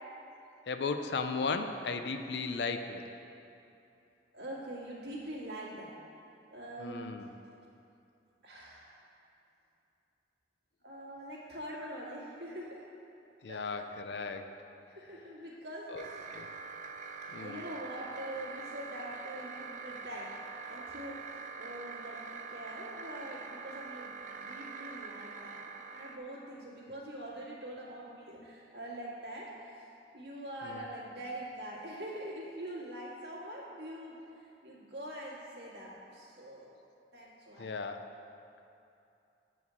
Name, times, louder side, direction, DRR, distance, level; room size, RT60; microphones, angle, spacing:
voice 1, 0.7-3.0 6.8-7.3 13.4-14.6 15.9-16.0 16.3-16.5 17.3-17.6 30.6-30.8 37.6-38.1, left 4 dB, 70° left, 8 dB, 0.5 m, -36 dB
voice 2, 4.3-6.0 6.5-7.3 8.4-9.0 10.8-12.9 13.5-13.8 14.9-16.3 17.3-20.3 20.7-24.1 24.4-25.6 25.9-29.9 30.1-36.7 37.1-37.7, right 1 dB, 70° right, -4 dB, 1.8 m, -44 dB
sound 1, 16.0-26.2, right 5 dB, 45° right, 0.5 m, -44 dB
7.9 x 4.8 x 6.9 m, 2.7 s
head